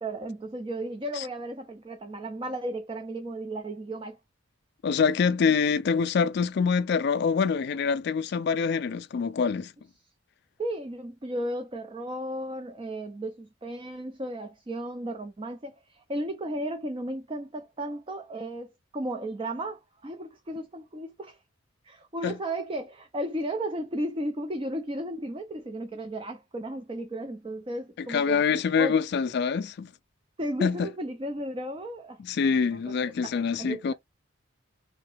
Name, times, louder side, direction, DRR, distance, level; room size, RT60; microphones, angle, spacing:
voice 1, 0.0-4.2 10.6-21.4 21.8-28.4 28.8-28.9 30.4-32.2 32.7-32.9 33.2-33.3 33.6-33.9, right 1 dB, 25° right, 0.5 m, -34 dB
voice 2, 4.8-9.7 22.2-22.4 28.0-29.9 30.6-30.9 32.2-33.9, left 5 dB, 55° left, 0.3 m, -25 dB
3.7 x 2.9 x 3.3 m
head